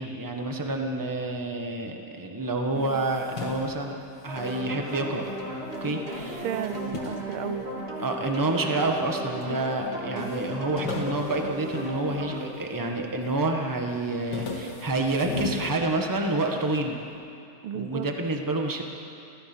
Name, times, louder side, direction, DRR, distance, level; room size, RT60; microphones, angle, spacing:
voice 1, 0.0-4.0 4.2-5.2 5.8-6.4 8.0-17.0 17.7-18.8, right 2 dB, 10° right, 2 dB, 1.3 m, -28 dB
sound 1, 2.7-5.4 5.7-8.2 8.8-9.5 9.8-9.9 10.2-12.7 13.1-13.6 13.9-16.5, left 3 dB, 55° left, 2.5 m, -37 dB
sound 2, 4.3-12.5, equal, 30° right, 3.0 m, -36 dB
voice 2, 6.4-7.6 17.6-18.1, right 9 dB, 85° right, 11 dB, 1.6 m, -33 dB
29.5 x 14.5 x 6.2 m, 2.7 s
omnidirectional pair, 2.3 m